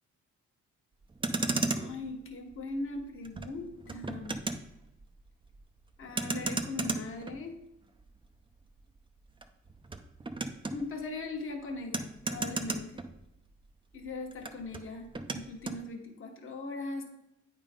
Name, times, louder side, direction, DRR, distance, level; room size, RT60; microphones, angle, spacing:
Motor vehicle (road), 1.0-13.7 13.9-15.8, right 3 dB, 15° right, 0.6 m, -37 dB
voice 1, 1.6-4.4 6.0-7.6 10.7-13.1 13.9-17.1, left 3 dB, 45° left, 2 dB, 1.3 m, -40 dB
8.6 x 3.7 x 5.1 m, 0.88 s
cardioid pair, 90°, 30 cm